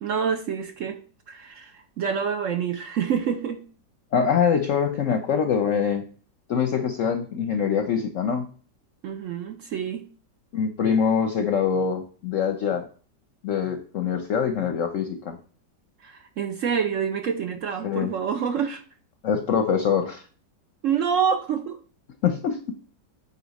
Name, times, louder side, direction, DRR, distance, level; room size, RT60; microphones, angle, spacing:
voice 1, 0.0-1.0 1.3-3.6 9.0-10.1 16.0-18.8 20.8-21.8, right 7 dB, 65° right, 7 dB, 0.8 m, -27 dB
voice 2, 4.1-6.0 6.5-8.5 10.5-12.8 13.4-15.4 17.8-18.1 19.2-20.2 22.2-22.6, left 7 dB, 60° left, 7 dB, 0.8 m, -24 dB
8.5 x 4.1 x 4.1 m, 0.41 s
omnidirectional pair, 1.9 m